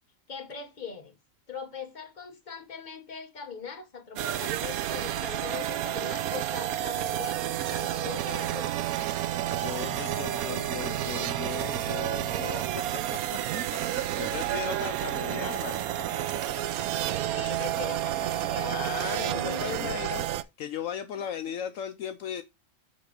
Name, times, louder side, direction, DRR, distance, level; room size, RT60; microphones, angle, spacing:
voice 1, 0.3-1.1 1.5-8.8 17.3-18.8 19.1-20.1, left 5 dB, 35° left, 1.3 m, -41 dB
sound 1, 4.2-20.4, right 12 dB, 85° right, 1.1 m, -30 dB
voice 2, 9.4-12.8 13.1-13.4 13.7-15.9 18.6-20.2 20.6-22.4, left 9 dB, 70° left, 1.0 m, -37 dB
7.2 x 3.4 x 5.0 m
omnidirectional pair, 1.5 m